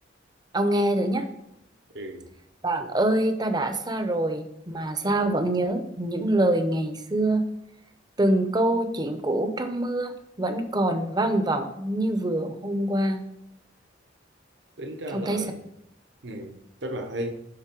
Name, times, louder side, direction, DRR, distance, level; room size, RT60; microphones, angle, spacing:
voice 1, 0.5-1.3 2.6-7.5 8.2-13.2 15.1-15.4, right 1 dB, 25° right, 0.7 m, -25 dB
voice 2, 1.9-2.3 14.8-15.6 16.2-17.3, right 1 dB, 70° right, 1.0 m, -34 dB
10.5 x 4.3 x 4.5 m
head